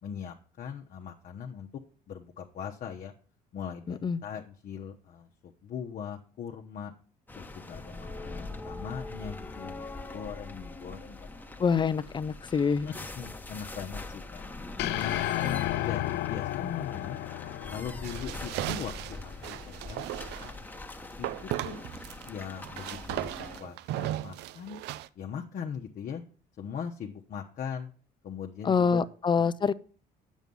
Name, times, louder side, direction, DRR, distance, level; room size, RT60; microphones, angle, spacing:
voice 1, 0.0-1.7 2.1-3.1 3.5-6.9 7.4-11.8 12.8-14.4 15.0-17.2 17.7-20.5 21.2-21.3 21.6-21.8 22.3-24.8 25.1-26.2 26.6-27.9 28.2-29.1 29.4-29.5, left 7 dB, 55° left, 2 dB, 1.0 m, -40 dB
sound 1, 7.3-23.6, left 2 dB, 10° left, 1.1 m, -43 dB
voice 2, 11.6-12.9 28.6-29.7, left 6 dB, 25° left, 17 dB, 0.5 m, -25 dB
sound 2, 14.8-19.2, left 15 dB, 80° left, 0.6 m, -33 dB
sound 3, 18.0-20.6 21.2-22.3 22.6-25.1, right 13 dB, 85° right, 0.5 m, -36 dB
9.1 x 7.3 x 5.4 m, 0.40 s
cardioid pair, 110°, 17 cm